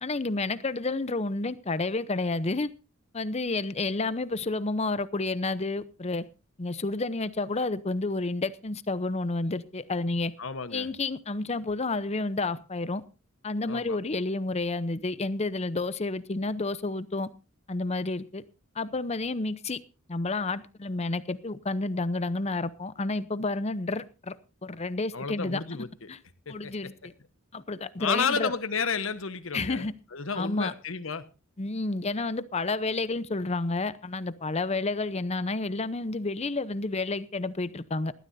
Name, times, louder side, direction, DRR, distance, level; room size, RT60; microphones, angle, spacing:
voice 1, 0.0-2.7 3.1-6.2 6.6-10.3 10.7-13.0 13.4-17.3 17.7-18.4 18.8-19.8 20.1-24.4 24.6-25.6 26.1-26.2 26.5-27.1 27.5-28.5 29.5-29.9 30.4-30.7 31.6-38.1, left 3 dB, 30° left, 0.7 m, -30 dB
voice 2, 10.4-10.9 13.7-14.0 25.1-26.1 26.5-26.7 28.0-31.3, left 5 dB, 70° left, 1.2 m, -31 dB
20.0 x 13.5 x 2.7 m
head